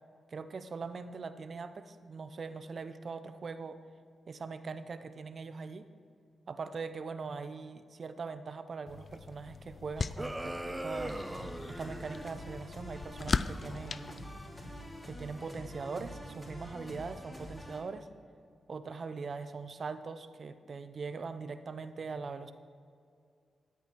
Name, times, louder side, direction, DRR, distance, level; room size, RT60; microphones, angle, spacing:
voice 1, 0.3-3.8 4.3-5.9 6.5-11.2 11.8-14.1 15.0-18.1 18.7-22.5, right 4 dB, 55° right, 11 dB, 0.7 m, -41 dB
sound 1, 8.9-15.0, left 4 dB, 50° left, 0.4 m, -39 dB
sound 2, 10.2-12.3, right 1 dB, 15° right, 0.6 m, -39 dB
sound 3, 10.9-17.8, equal, 15° left, 2.8 m, -46 dB
13.0 x 8.2 x 4.6 m, 2.3 s
cardioid pair, 65°, 0 cm